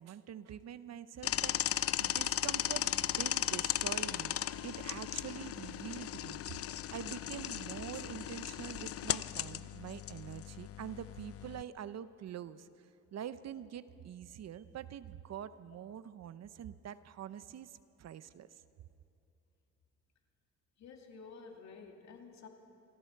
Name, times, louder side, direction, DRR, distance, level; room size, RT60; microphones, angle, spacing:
voice 1, 0.0-4.3 4.6-6.4 6.9-12.7 13.1-18.5, right 9 dB, 60° right, 14 dB, 0.8 m, -45 dB
sound 1, 1.2-11.6, left 11 dB, 50° left, 0.5 m, -36 dB
voice 2, 20.8-22.5, left 5 dB, 65° left, 2 dB, 2.8 m, -51 dB
26.5 x 25.0 x 4.7 m, 2.7 s
cardioid pair, 90°, 30 cm